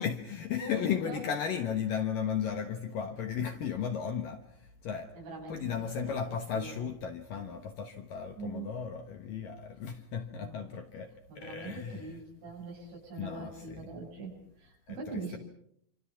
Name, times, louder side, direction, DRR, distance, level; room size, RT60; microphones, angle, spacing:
voice 1, 0.0-5.1 5.5-12.1 13.2-14.0 14.9-15.4, left 7 dB, 65° left, 2.3 m, -35 dB
voice 2, 0.6-1.2 5.1-5.8 6.0-6.2 6.5-6.9 8.4-8.7 10.4-10.8 11.3-15.4, right 3 dB, 80° right, 9.1 m, -42 dB
26.5 x 26.5 x 5.8 m
omnidirectional pair, 5.3 m